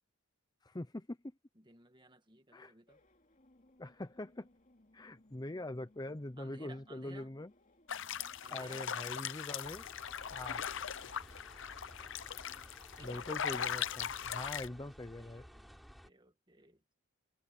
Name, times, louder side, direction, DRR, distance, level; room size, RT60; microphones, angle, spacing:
voice 1, 0.6-1.2 2.5-2.7 3.8-4.5 4.9-7.5 8.5-9.8 10.3-10.6 13.0-15.4, left 1 dB, 20° left, 0.6 m, -43 dB
voice 2, 1.5-3.0 6.4-7.3 8.4-8.8 13.0-13.3 14.8-17.0, right 2 dB, 20° right, 2.0 m, -59 dB
sound 1, 2.9-12.8, left 1 dB, 35° left, 2.9 m, -67 dB
sound 2, 7.9-14.7, left 8 dB, 60° left, 0.7 m, -40 dB
sound 3, 9.6-16.1, equal, ahead, 7.1 m, -56 dB
head